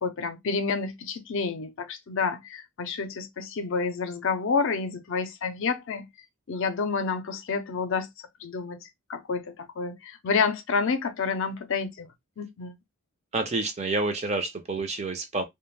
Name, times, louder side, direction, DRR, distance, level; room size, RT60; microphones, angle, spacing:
voice 1, 0.0-6.1 6.5-8.1 8.4-8.8 9.1-12.1 12.4-12.7, left 5 dB, 60° left, 0.5 m, -29 dB
voice 2, 13.3-15.4, right 3 dB, 30° right, 0.5 m, -28 dB
2.4 x 2.1 x 3.2 m
head